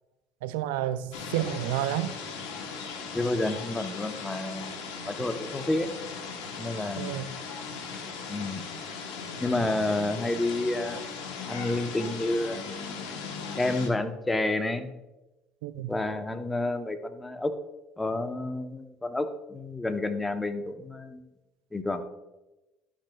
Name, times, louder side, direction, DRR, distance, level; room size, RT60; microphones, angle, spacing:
voice 1, 0.4-2.1 7.0-7.3 15.6-15.9, right 12 dB, 85° right, 0.3 m, -30 dB
sound 1, 1.1-13.9, left 5 dB, 80° left, 1.0 m, -38 dB
voice 2, 3.1-5.9 6.6-7.2 8.3-8.6 9.4-11.0 11.5-12.6 13.6-14.9 15.9-17.5 18.0-21.2 21.7-22.0, left 2 dB, 15° left, 0.8 m, -30 dB
11.5 x 6.2 x 2.3 m
supercardioid pair, 75°, 0 cm